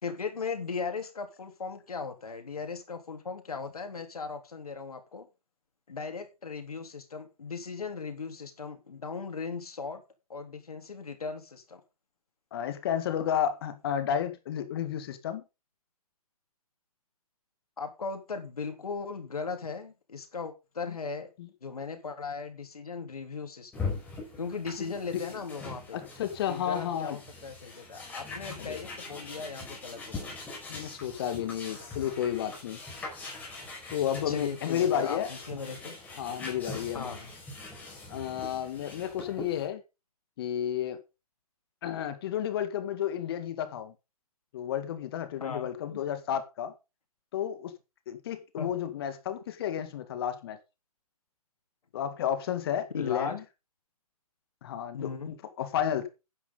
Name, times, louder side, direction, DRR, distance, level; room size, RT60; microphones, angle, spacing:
voice 1, 0.0-5.3 5.9-10.0 10.3-11.8 17.8-21.3 21.6-23.9 24.4-26.0 26.5-30.3 34.3-36.0 36.9-37.3 45.4-46.0 48.6-48.7 52.9-53.4 54.9-55.3, left 5 dB, 70° left, 3.7 m, -38 dB
voice 2, 12.5-15.4 21.4-21.5 24.8-25.2 25.9-27.2 28.6-28.8 30.7-32.8 33.9-35.3 36.2-37.1 38.1-39.8 40.4-41.0 41.8-43.9 44.5-46.8 47.3-47.7 48.1-50.6 51.9-53.4 54.6-56.1, left 9 dB, 40° left, 1.9 m, -32 dB
sound 1, 23.7-39.7, left 3 dB, 10° left, 5.3 m, -42 dB
12.5 x 9.9 x 3.9 m
figure-of-eight pair, 135°, 20 cm